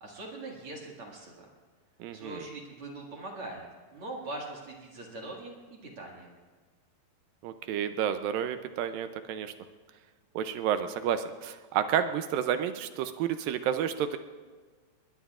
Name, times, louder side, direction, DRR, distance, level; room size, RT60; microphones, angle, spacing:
voice 1, 0.0-1.5 2.1-3.6 3.9-6.3, right 2 dB, 45° right, -1 dB, 2.3 m, -42 dB
voice 2, 2.0-2.4 7.4-9.5 10.4-14.2, right 9 dB, 80° right, 9 dB, 2.1 m, -30 dB
21.0 x 20.5 x 2.4 m, 1.4 s
omnidirectional pair, 4.6 m